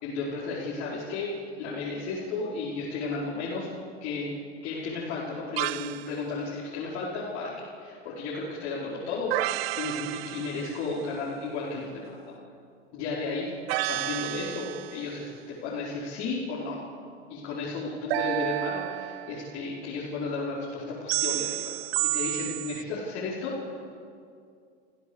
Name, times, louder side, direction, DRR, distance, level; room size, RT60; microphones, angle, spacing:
voice 1, 0.0-3.7 4.0-4.3 4.6-12.4 12.9-16.8 17.3-23.8, left 3 dB, 50° left, -7 dB, 5.0 m, -33 dB
sound 1, 5.6-6.1 9.3-11.0 13.7-15.1 18.1-19.6 21.1-22.8, right 19 dB, 60° right, 0.6 m, -31 dB
25.0 x 16.0 x 7.3 m, 2.3 s
supercardioid pair, 120°, 34 cm